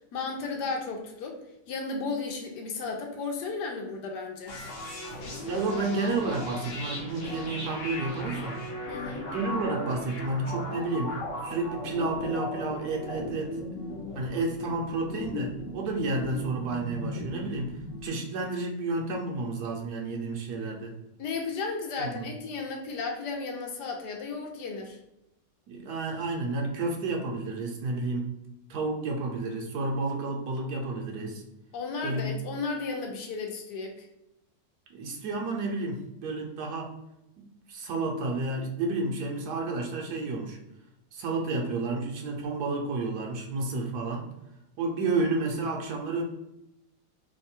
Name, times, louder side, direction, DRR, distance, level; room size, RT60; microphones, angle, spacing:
voice 1, 0.1-1.4 1.7-4.6 8.9-9.2 21.2-25.0 31.7-34.1, left 4 dB, 75° left, 2 dB, 1.2 m, -34 dB
sound 1, 4.5-18.1, left 1 dB, 55° left, 1.0 m, -37 dB
voice 2, 5.5-8.6 9.3-13.6 14.1-20.9 22.0-22.3 25.7-28.3 28.7-31.4 32.0-32.3 34.9-36.9 37.4-40.6 41.1-44.3 44.8-46.2, right 3 dB, 70° right, 1 dB, 1.1 m, -31 dB
3.2 x 2.2 x 4.2 m, 0.88 s
omnidirectional pair, 1.9 m